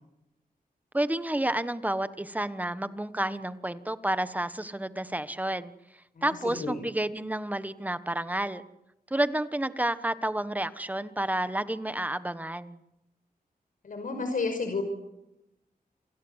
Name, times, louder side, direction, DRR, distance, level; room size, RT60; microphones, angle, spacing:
voice 1, 0.9-5.7 6.2-8.6 9.1-12.8, right 1 dB, 10° right, 13 dB, 1.4 m, -30 dB
voice 2, 6.2-6.8 13.8-14.8, left 4 dB, 60° left, 5 dB, 5.6 m, -31 dB
28.5 x 24.5 x 8.2 m, 0.87 s
wide cardioid pair, 135°, 15 cm